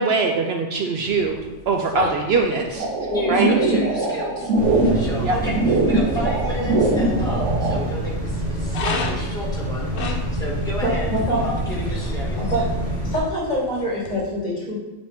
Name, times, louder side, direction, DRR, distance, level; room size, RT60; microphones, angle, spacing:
voice 1, 0.0-1.4 1.7-2.9 3.3-3.8 5.2-5.4, right 4 dB, 65° right, 3 dB, 0.8 m, -22 dB
sound 1, 1.1-14.1, left 4 dB, 55° left, 0.9 m, -37 dB
sound 2, 2.8-7.8, right 2 dB, 85° right, 1.3 m, -22 dB
voice 2, 3.1-4.5 4.8-11.1 11.4-12.5, left 1 dB, 5° left, -7 dB, 1.9 m, -31 dB
sound 3, 4.5-13.2, right 1 dB, 30° right, 1.6 m, -26 dB
voice 3, 10.8-11.5 11.9-12.7 13.0-14.8, equal, 35° left, -5 dB, 2.0 m, -25 dB
7.4 x 5.1 x 3.5 m, 1.1 s
omnidirectional pair, 1.2 m